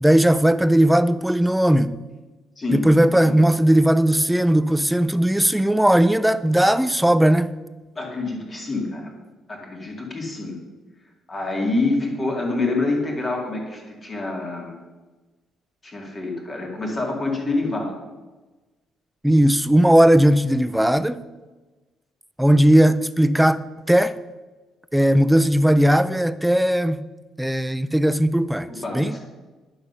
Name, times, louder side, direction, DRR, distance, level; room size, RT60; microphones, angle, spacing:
voice 1, 0.0-2.0 2.7-7.5 19.2-21.2 22.4-23.6 23.9-24.1 24.9-27.1 27.4-28.7 28.9-29.2, right 1 dB, 5° right, 0.3 m, -17 dB
voice 2, 8.0-9.1 9.5-10.6 11.3-14.7 15.8-17.9 28.7-29.2, left 2 dB, 20° left, 2.2 m, -26 dB
11.0 x 7.0 x 5.5 m
cardioid pair, 170°, 0 cm